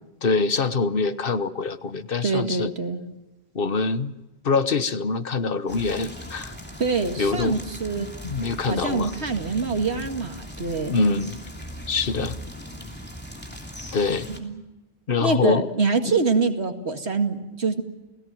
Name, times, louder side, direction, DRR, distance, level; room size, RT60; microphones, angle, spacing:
voice 1, 0.2-2.7 3.5-4.1 4.4-6.5 7.2-7.6 8.0-9.1 10.9-11.4 11.9-12.3 13.9-14.3 15.1-15.7 16.0-16.2, left 4 dB, 60° left, 13 dB, 1.2 m, -24 dB
voice 2, 2.2-3.0 6.8-8.1 8.6-11.0 14.3-14.6 15.2-17.8, right 4 dB, 90° right, 6 dB, 2.5 m, -25 dB
sound 1, 5.7-14.4, equal, 10° left, 3.1 m, -39 dB
29.5 x 18.0 x 7.7 m, 1.1 s
omnidirectional pair, 1.1 m